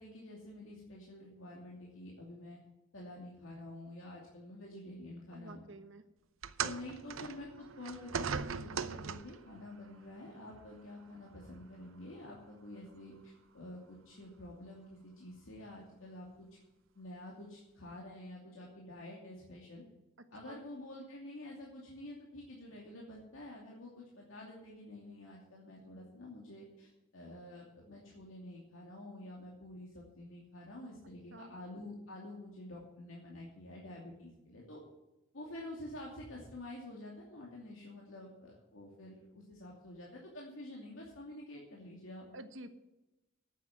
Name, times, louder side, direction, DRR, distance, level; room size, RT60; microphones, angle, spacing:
voice 1, 0.0-2.6 2.9-5.6 6.6-16.3 16.9-19.8 20.3-34.8 35.3-42.3, left 1 dB, 80° left, -3 dB, 2.6 m, -49 dB
voice 2, 5.3-6.0 20.4-20.6 31.3-31.6 42.3-42.7, right 2 dB, 70° right, 8 dB, 1.3 m, -49 dB
sound 1, 6.4-9.5 10.5-10.6 11.5-11.6, right 6 dB, 85° right, 0.7 m, -39 dB
9.4 x 8.4 x 9.2 m, 0.99 s
head